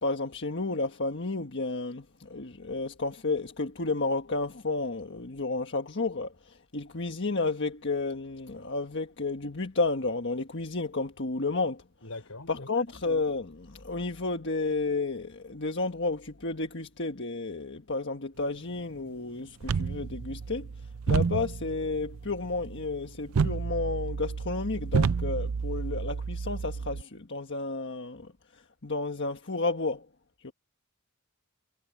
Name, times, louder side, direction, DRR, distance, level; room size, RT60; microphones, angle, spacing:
voice 1, 0.0-11.8 12.5-30.1 30.4-30.5, left 3 dB, 55° left, 1.5 m, -32 dB
voice 2, 12.0-12.7, left 2 dB, 80° left, 4.5 m, -42 dB
sound 1, 19.6-27.0, right 5 dB, 70° right, 0.5 m, -31 dB
head